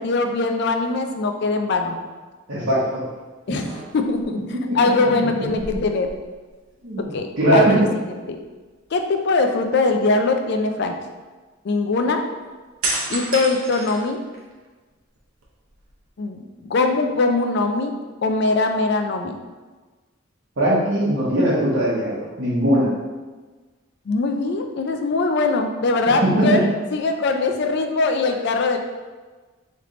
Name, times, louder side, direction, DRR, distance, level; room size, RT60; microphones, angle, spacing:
voice 1, 0.0-2.0 3.5-3.7 3.9-6.1 7.1-7.9 8.3-8.4 8.9-11.0 11.6-12.2 13.1-14.2 16.2-17.9 18.2-19.3 24.1-26.6 26.9-28.8, left 3 dB, 55° left, 5 dB, 0.4 m, -21 dB
voice 2, 2.5-3.0 4.7-4.8 6.8-7.1 7.4-7.8 20.6-22.9 26.4-26.6, right 1 dB, 60° right, -10 dB, 1.0 m, -19 dB
sound 1, 2.7-3.0 3.4-4.2 5.4-6.7 7.0-7.2 12.8-14.7 15.2-16.1, right 2 dB, 85° right, 0.9 m, -31 dB
3.2 x 3.2 x 3.8 m, 1.3 s
head